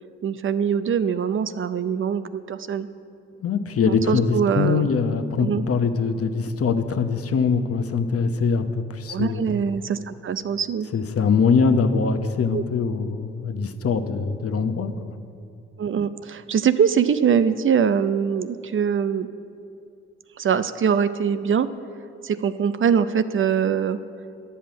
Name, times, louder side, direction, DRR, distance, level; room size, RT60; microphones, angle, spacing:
voice 1, 0.2-2.9 3.9-4.9 5.4-5.6 9.1-10.9 12.5-12.6 15.8-19.3 20.4-21.7 22.2-24.0, right 7 dB, 45° right, 13 dB, 0.5 m, -23 dB
voice 2, 3.4-9.5 10.9-15.1, left 5 dB, 50° left, 8 dB, 0.9 m, -23 dB
10.5 x 5.6 x 8.6 m, 2.5 s
hypercardioid pair, 45°, 30 cm